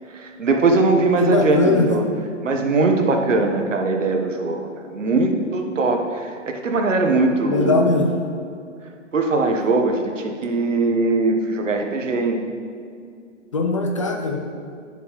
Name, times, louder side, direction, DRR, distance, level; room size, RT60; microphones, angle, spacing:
voice 1, 0.1-2.0 2.4-8.0 9.1-12.4, right 3 dB, 75° right, 4 dB, 1.2 m, -21 dB
voice 2, 1.2-1.9 7.5-8.1 13.5-14.4, left 3 dB, 25° left, 3 dB, 0.4 m, -20 dB
10.5 x 7.0 x 3.1 m, 2.3 s
hypercardioid pair, 135°, 38 cm